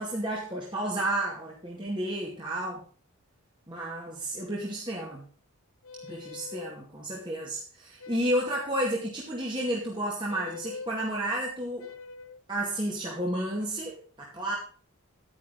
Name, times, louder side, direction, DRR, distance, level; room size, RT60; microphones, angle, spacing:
voice 1, 0.0-2.8 3.7-5.2 6.1-11.9 12.5-14.6, right 1 dB, 20° right, -3 dB, 2.1 m, -31 dB
sound 1, 5.8-6.8 8.0-8.6 10.3-10.9 11.8-12.4, left 4 dB, 70° left, 0.8 m, -43 dB
10.5 x 9.9 x 3.8 m, 0.40 s
head